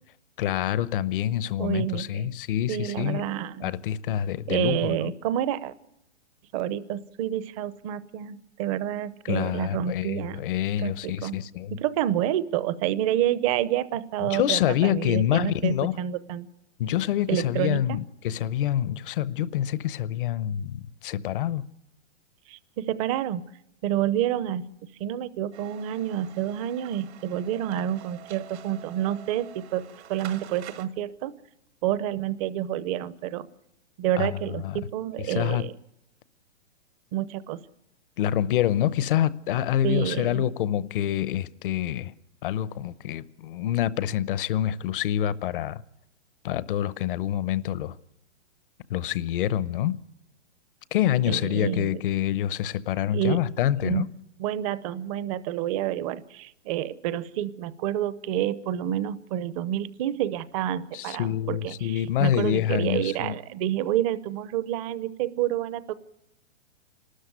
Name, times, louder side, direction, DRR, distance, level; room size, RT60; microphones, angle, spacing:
voice 1, 0.4-3.2 3.6-5.1 9.2-11.8 14.2-15.9 16.8-21.7 34.2-34.8 35.2-35.7 38.2-42.1 42.4-45.8 46.4-48.0 48.9-50.0 50.9-54.1 60.9-63.3, left 11 dB, 50° left, 0.8 m, -26 dB
voice 2, 1.6-2.3 2.7-3.7 4.5-5.7 6.5-10.4 10.8-11.4 11.7-16.5 17.3-18.0 22.5-23.4 23.8-24.6 25.0-31.3 31.8-33.5 34.0-35.7 37.1-37.6 39.8-40.5 51.3-52.0 53.1-53.4 53.8-54.1 54.4-65.9, right 11 dB, 30° right, 0.8 m, -28 dB
sound 1, 25.5-30.9, right 10 dB, 70° right, 1.9 m, -46 dB
28.5 x 13.0 x 9.4 m
hypercardioid pair, 145°, 34 cm